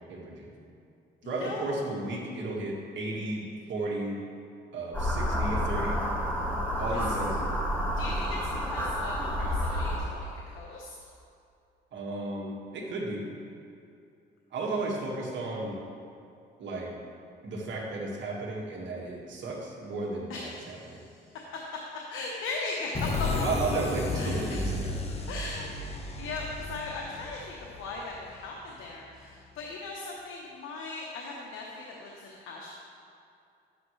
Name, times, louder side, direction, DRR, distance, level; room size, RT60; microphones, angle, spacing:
voice 1, 0.1-0.6 1.2-4.2 4.7-6.0 6.8-7.4 11.9-13.3 14.5-15.8 16.6-17.0 17.4-21.0 23.4-25.0, right 2 dB, 65° right, -2 dB, 1.8 m, -34 dB
voice 2, 1.2-1.8 6.9-7.0 7.9-8.4 8.6-11.0 20.3-21.3 22.1-23.3 24.1-24.6 25.3-25.7 26.2-32.7, left 3 dB, 90° left, -1 dB, 1.0 m, -39 dB
sound 1, 4.9-10.0, equal, 10° left, 1.7 m, -29 dB
sound 2, 22.9-28.5, left 2 dB, 30° left, 1.0 m, -33 dB
10.5 x 8.0 x 3.2 m, 2.5 s
cardioid pair, 90°, 20 cm